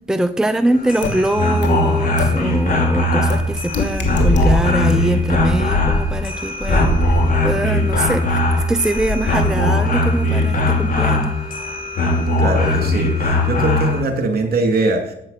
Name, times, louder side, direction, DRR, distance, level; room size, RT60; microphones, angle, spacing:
voice 1, 0.1-8.4 8.7-11.3, right 1 dB, 5° right, 9 dB, 0.8 m, -22 dB
sound 1, 0.7-14.0, left 2 dB, 45° left, 5.8 m, -19 dB
sound 2, 1.0-1.1 1.6-1.7 2.2-2.3 3.3-3.4 3.7-4.5 4.9-5.0, left 6 dB, 65° left, 2.8 m, -23 dB
sound 3, 3.4-3.6 3.9-4.8 5.2-6.3 6.6-9.8, left 1 dB, 20° left, 4.3 m, -22 dB
voice 2, 12.4-15.1, right 3 dB, 50° right, 5 dB, 2.9 m, -21 dB
14.0 x 9.0 x 5.9 m, 0.77 s
cardioid pair, 90°, 20 cm